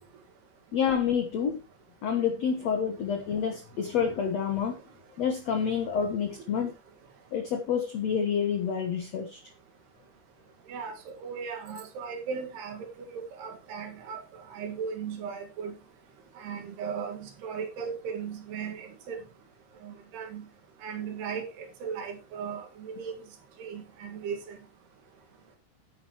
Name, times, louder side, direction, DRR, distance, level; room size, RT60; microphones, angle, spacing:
voice 1, 0.7-1.6 2.0-4.8 5.2-6.7 7.3-9.4, left 7 dB, 60° left, 5 dB, 1.9 m, -28 dB
voice 2, 10.7-14.2 14.5-15.8 16.4-19.2 19.8-20.5 20.8-23.1 23.6-24.6, right 6 dB, 80° right, 4 dB, 4.1 m, -37 dB
11.0 x 11.0 x 3.1 m, 0.29 s
omnidirectional pair, 4.7 m